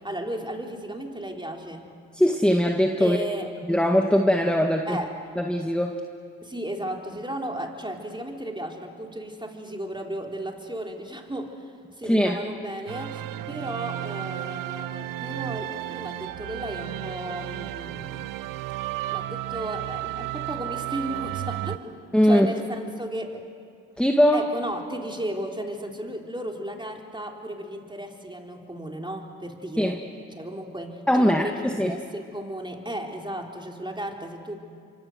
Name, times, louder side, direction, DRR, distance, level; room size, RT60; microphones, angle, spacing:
voice 1, 0.0-1.9 3.0-3.5 4.9-5.1 6.4-18.3 19.1-23.4 24.3-30.0 30.3-34.6, right 1 dB, 15° right, 2 dB, 3.6 m, -35 dB
voice 2, 2.1-3.2 3.7-5.0 5.4-6.0 12.1-12.4 22.1-22.5 24.0-24.5 29.8-29.9 31.1-31.9, equal, 5° left, 3 dB, 1.8 m, -21 dB
sound 1, 12.9-21.8, right 15 dB, 85° right, 0.6 m, -33 dB
25.5 x 25.0 x 6.5 m, 2.2 s
supercardioid pair, 45°, 32 cm